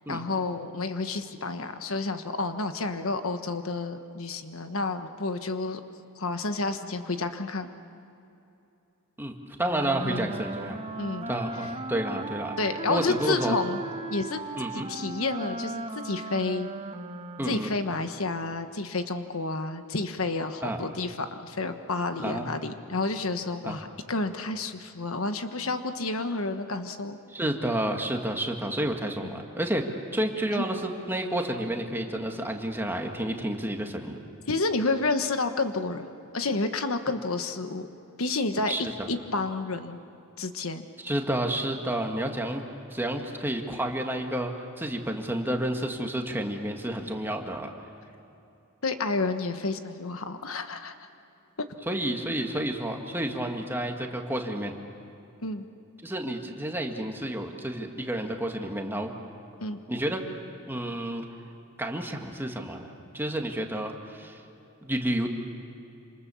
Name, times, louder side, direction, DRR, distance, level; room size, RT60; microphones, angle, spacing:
voice 1, 0.1-5.8 6.2-7.7 10.0-10.3 11.0-11.3 12.6-13.8 14.1-14.4 14.7-16.7 17.5-27.2 29.2-29.3 30.5-30.7 34.5-36.1 36.3-37.9 38.2-38.7 39.1-40.0 40.4-40.8 48.8-50.9 55.4-55.7 59.6-59.8, left 3 dB, 70° left, 8 dB, 1.3 m, -30 dB
voice 2, 9.2-10.8 11.3-13.6 14.6-14.9 17.4-17.7 20.6-20.9 22.2-22.5 23.6-23.8 27.3-29.8 30.1-34.2 38.7-39.1 41.0-42.6 42.9-47.7 51.9-54.7 56.0-59.1 59.9-60.2 60.7-61.2 61.8-64.4 64.8-65.3, right 1 dB, 10° right, 3 dB, 1.9 m, -30 dB
Wind instrument woodwind instrument, 9.6-17.9, right 2 dB, 25° right, 1.0 m, -37 dB
27.5 x 27.0 x 7.1 m, 2.8 s
head